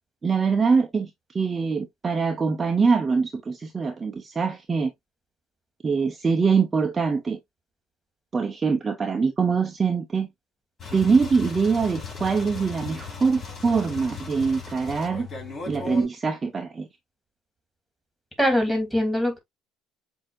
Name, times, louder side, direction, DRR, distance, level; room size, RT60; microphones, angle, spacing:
voice 1, 0.2-1.1 1.3-4.9 5.8-7.4 8.3-10.3 10.9-15.3 15.7-16.9, right 5 dB, 30° right, 0.7 m, -23 dB
sound 1, 10.8-16.1, left 5 dB, 40° left, 3.1 m, -37 dB
voice 2, 18.4-19.4, equal, ahead, 2.6 m, -22 dB
7.3 x 2.8 x 2.4 m
hypercardioid pair, 65°, 0 cm